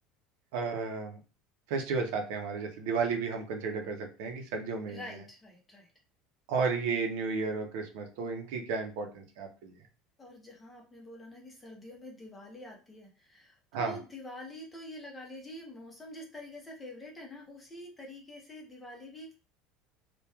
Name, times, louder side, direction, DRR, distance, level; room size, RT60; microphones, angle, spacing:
voice 1, 0.5-1.2 1.7-5.0 6.5-9.7 13.7-14.0, right 4 dB, 75° right, 3 dB, 0.6 m, -33 dB
voice 2, 4.9-5.9 10.2-19.4, left 1 dB, 10° left, -1 dB, 0.7 m, -46 dB
2.9 x 2.2 x 2.2 m, 0.34 s
cardioid pair, 155°, 0 cm